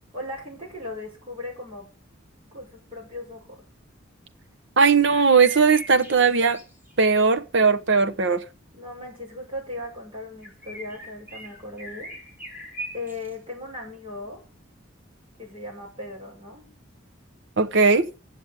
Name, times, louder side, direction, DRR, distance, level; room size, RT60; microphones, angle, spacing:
voice 1, 0.1-1.9 2.5-3.6 8.7-12.1 12.9-14.4 15.4-16.6, left 2 dB, 25° right, 6.3 m, -37 dB
voice 2, 4.8-6.6 7.0-8.4 17.6-18.1, right 5 dB, 60° right, 1.0 m, -18 dB
sound 1, 5.1-6.9 10.4-13.3, right 2 dB, 10° right, 2.9 m, -40 dB
8.9 x 7.1 x 8.3 m
head